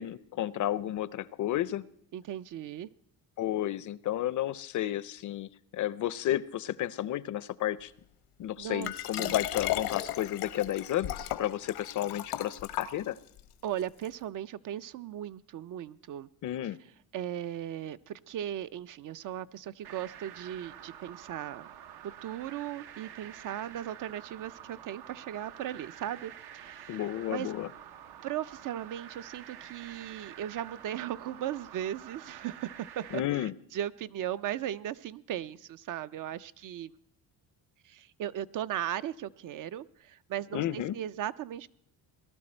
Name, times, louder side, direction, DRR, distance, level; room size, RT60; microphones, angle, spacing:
voice 1, 0.0-1.8 3.4-7.9 8.4-13.2 16.4-16.8 26.9-27.7 33.1-33.5 40.5-40.9, left 12 dB, 50° left, 19 dB, 0.5 m, -32 dB
voice 2, 2.1-2.9 8.6-9.4 13.6-16.3 16.6-16.7 17.1-21.7 22.0-27.5 28.2-36.9 37.8-41.7, right 11 dB, 55° right, 15 dB, 0.5 m, -37 dB
Liquid, 8.8-13.4 14.0-14.1, left 13 dB, 90° left, 1.0 m, -34 dB
sound 1, 19.8-33.2, right 10 dB, 75° right, 0.9 m, -48 dB
18.5 x 12.0 x 4.4 m, 0.69 s
cardioid pair, 110°, 39 cm